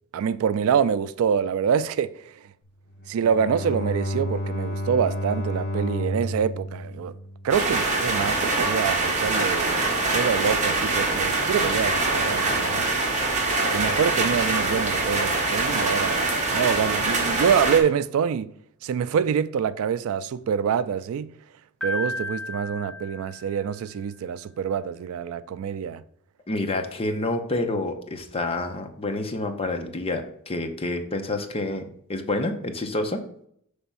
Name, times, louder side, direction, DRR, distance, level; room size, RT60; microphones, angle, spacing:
voice 1, 0.1-2.5 3.1-7.2 7.4-9.7 10.1-12.9 13.7-18.5 18.8-21.4 21.8-26.0, right 7 dB, 70° right, 0.3 m, -26 dB
Bowed string instrument, 2.9-8.1, equal, 45° left, 1.4 m, -31 dB
sound 1, 7.5-17.8, right 3 dB, 35° right, 1.1 m, -24 dB
Piano, 21.8-23.9, left 2 dB, 5° left, 1.3 m, -34 dB
voice 2, 26.5-33.2, left 2 dB, 25° left, 0.7 m, -28 dB
6.1 x 3.4 x 5.5 m
head